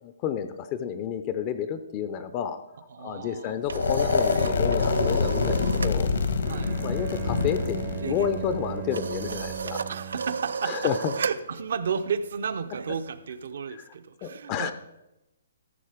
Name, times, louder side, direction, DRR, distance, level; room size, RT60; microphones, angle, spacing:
voice 1, 0.2-2.6 3.0-6.1 6.8-9.9 10.6-11.1 13.7-13.8 14.2-14.7, left 8 dB, 25° left, 10 dB, 0.5 m, -30 dB
voice 2, 2.9-3.6 6.5-7.0 9.9-14.7, right 6 dB, 65° right, 11 dB, 0.8 m, -33 dB
sound 1, 3.3-6.0 6.3-6.6 6.8-13.5, right 5 dB, 85° right, 0.4 m, -36 dB
sound 2, 3.6-9.6, left 4 dB, 75° left, 1.6 m, -26 dB
Bowed string instrument, 6.4-10.5, right 7 dB, 30° right, 0.7 m, -37 dB
13.5 x 6.5 x 5.0 m, 0.92 s
hypercardioid pair, 160°, 0 cm